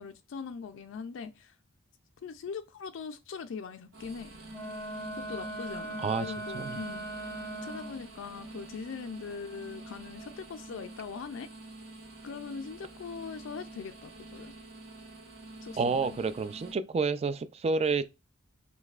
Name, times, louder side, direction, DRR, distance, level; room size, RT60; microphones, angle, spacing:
voice 1, 0.0-1.6 2.2-4.3 5.2-7.1 7.6-11.5 12.2-14.5 15.6-16.1, left 5 dB, 65° left, 0.3 m, -41 dB
sound 1, 3.9-16.7, right 2 dB, 75° right, 1.4 m, -47 dB
Wind instrument woodwind instrument, 4.5-8.1, right 1 dB, 10° left, 0.8 m, -39 dB
voice 2, 15.8-18.0, right 4 dB, 30° right, 0.3 m, -29 dB
5.3 x 3.1 x 2.4 m
head